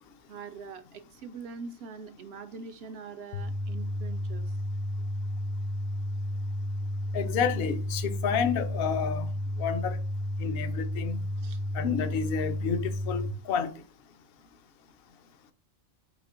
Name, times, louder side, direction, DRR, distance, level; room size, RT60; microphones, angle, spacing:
voice 1, 0.3-4.5 11.4-11.6, right 5 dB, 65° right, 0.7 m, -43 dB
sound 1, 3.3-13.3, left 1 dB, 90° left, 1.0 m, -32 dB
voice 2, 7.1-9.3 9.6-10.0 10.4-11.2 11.7-13.7, left 7 dB, 60° left, 0.7 m, -30 dB
5.0 x 2.8 x 3.7 m
omnidirectional pair, 1.3 m